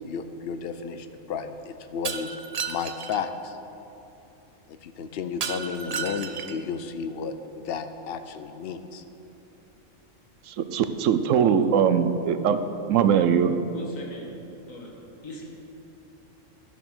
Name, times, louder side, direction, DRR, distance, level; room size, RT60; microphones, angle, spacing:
voice 1, 0.0-2.3 2.6-3.6 4.7-9.0, left 6 dB, 55° left, 9 dB, 0.8 m, -33 dB
Shatter, 2.0-3.2 5.4-6.7, right 6 dB, 55° right, 0.4 m, -33 dB
voice 2, 10.5-12.6 12.9-13.5, right 8 dB, 75° right, 11 dB, 1.0 m, -21 dB
voice 3, 13.7-14.2 14.7-14.9 15.2-15.4, left 1 dB, 85° left, -2 dB, 2.2 m, -40 dB
12.5 x 7.1 x 6.1 m, 3.0 s
omnidirectional pair, 1.3 m